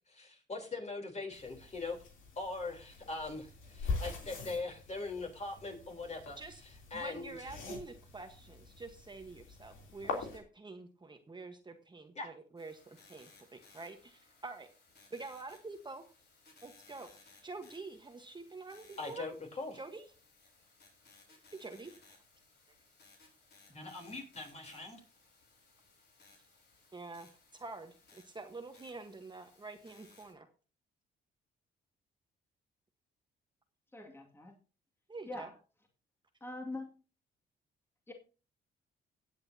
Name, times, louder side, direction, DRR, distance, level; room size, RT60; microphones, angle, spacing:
voice 1, 0.1-2.0 2.4-7.5 12.2-12.3 19.0-19.8 23.7-25.0, left 3 dB, 35° left, 3 dB, 3.6 m, -41 dB
sound 1, 1.3-10.4, left 4 dB, 85° left, 3.2 m, -43 dB
voice 2, 6.9-13.3 13.7-14.7 15.1-16.1 16.6-17.1 17.4-19.3 19.7-20.1 21.6-22.2 26.9-30.5 35.1-35.5, right 3 dB, 25° right, 5 dB, 1.2 m, -47 dB
sound 2, 12.6-30.3, left 3 dB, 55° left, 4.2 m, -63 dB
voice 3, 33.9-34.5 35.3-35.5 36.4-36.9 38.1-38.2, left 2 dB, 10° left, 1 dB, 2.2 m, -43 dB
17.5 x 8.2 x 2.8 m, 0.36 s
cardioid pair, 90°, 20 cm